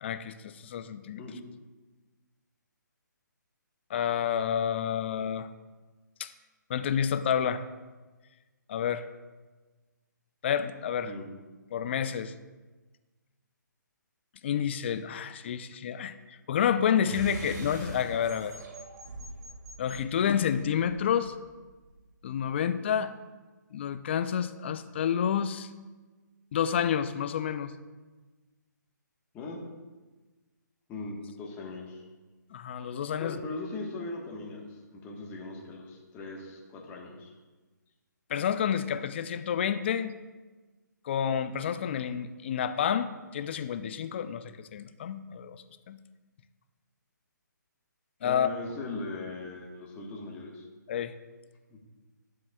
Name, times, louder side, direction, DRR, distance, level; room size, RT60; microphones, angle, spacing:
voice 1, 0.0-1.2 3.9-5.5 6.2-6.3 6.7-7.6 8.7-9.1 10.4-11.1 11.7-12.3 14.4-18.6 19.8-21.3 22.2-23.1 23.7-25.7 26.5-27.8 32.5-33.4 38.3-40.1 41.0-46.0 48.2-48.5 50.9-51.1, left 8 dB, 35° left, 11 dB, 0.4 m, -29 dB
sound 1, 17.1-22.0, right 2 dB, 65° right, 1.7 m, -43 dB
voice 2, 30.9-32.0 33.1-37.3 48.2-50.6 51.7-51.8, left 3 dB, 15° left, -2 dB, 1.3 m, -39 dB
12.0 x 7.5 x 2.3 m, 1.3 s
hypercardioid pair, 155°, 10 cm